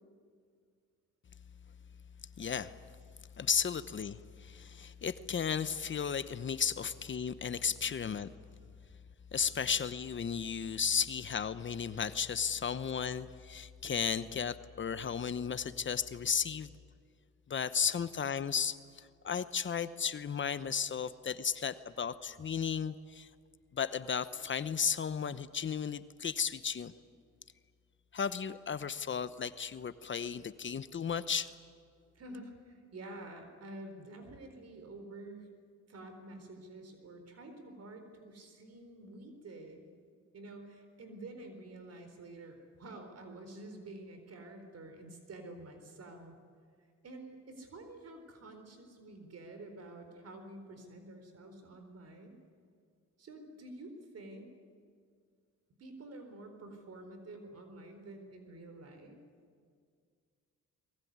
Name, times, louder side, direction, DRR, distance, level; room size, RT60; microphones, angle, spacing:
voice 1, 2.4-2.8 3.4-8.3 9.3-16.7 17.5-23.3 23.7-26.9 28.1-31.5, left 7 dB, 40° left, 14 dB, 0.9 m, -34 dB
voice 2, 32.1-35.5 35.9-39.9 40.3-46.4 47.0-52.4 53.2-54.5 55.8-59.2, right 2 dB, 55° right, 6 dB, 4.2 m, -49 dB
23.5 x 21.5 x 9.5 m, 2.1 s
cardioid pair, 90°, 30 cm